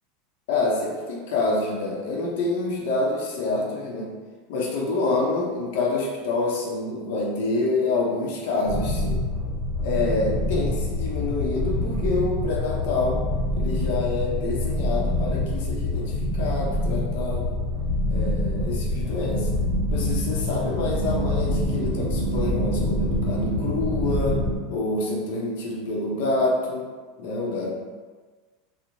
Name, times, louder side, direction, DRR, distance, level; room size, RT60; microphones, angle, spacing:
voice 1, 0.5-4.1 4.5-9.2 9.8-13.2 13.5-17.6 18.1-19.5 19.9-24.4 24.7-26.9 27.2-27.7, left 3 dB, 70° left, -2 dB, 0.6 m, -27 dB
sound 1, 8.7-24.6, left 1 dB, 15° left, 0.7 m, -26 dB
2.9 x 2.0 x 2.6 m, 1.4 s
supercardioid pair, 140°, 0 cm